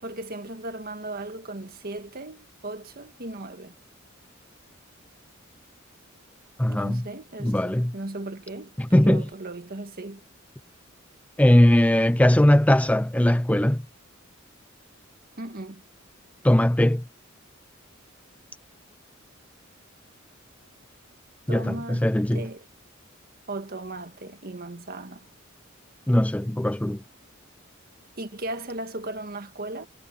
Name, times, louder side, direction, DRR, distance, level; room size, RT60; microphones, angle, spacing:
voice 1, 0.0-3.8 6.7-10.2 15.4-15.8 21.5-22.0 22.3-22.6 23.5-25.3 28.2-29.9, right 2 dB, 45° right, 1.7 m, -36 dB
voice 2, 6.6-7.0 7.4-7.9 8.8-9.3 11.4-13.8 16.4-17.0 21.5-22.5 26.1-27.0, left 1 dB, 5° left, 0.5 m, -20 dB
head